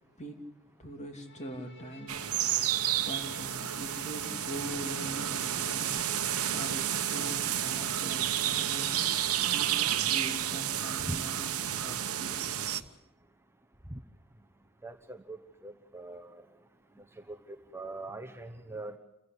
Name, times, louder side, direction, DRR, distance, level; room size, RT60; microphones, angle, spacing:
voice 1, 0.8-2.6 3.0-6.1 6.5-8.9 9.3-12.6, equal, 30° left, 4 dB, 2.8 m, -43 dB
Bowed string instrument, 1.2-10.4, left 2 dB, 55° left, 1.9 m, -49 dB
sound 1, 2.1-12.8, right 11 dB, 70° right, 1.1 m, -31 dB
voice 2, 14.8-15.4 15.6-16.4 17.0-19.0, right 2 dB, 10° right, 4 dB, 1.0 m, -41 dB
29.0 x 15.0 x 8.3 m, 0.95 s
head